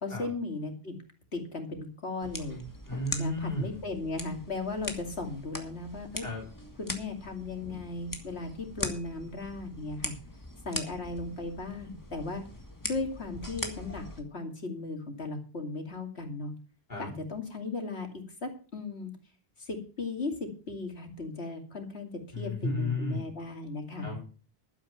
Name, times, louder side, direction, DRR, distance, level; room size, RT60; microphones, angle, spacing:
voice 1, 0.0-0.9 1.3-2.6 3.2-6.3 6.8-10.2 10.6-12.4 12.8-16.5 17.0-19.1 19.6-22.1 22.4-24.2, left 3 dB, 90° left, 3 dB, 2.8 m, -36 dB
sound 1, 2.2-14.2, left 1 dB, 20° left, 1.7 m, -41 dB
voice 2, 2.9-3.8 6.2-6.5 16.9-17.1 22.3-23.2 24.0-24.2, left 2 dB, 50° left, -5 dB, 4.6 m, -33 dB
12.0 x 9.0 x 5.8 m, 0.38 s
omnidirectional pair, 1.1 m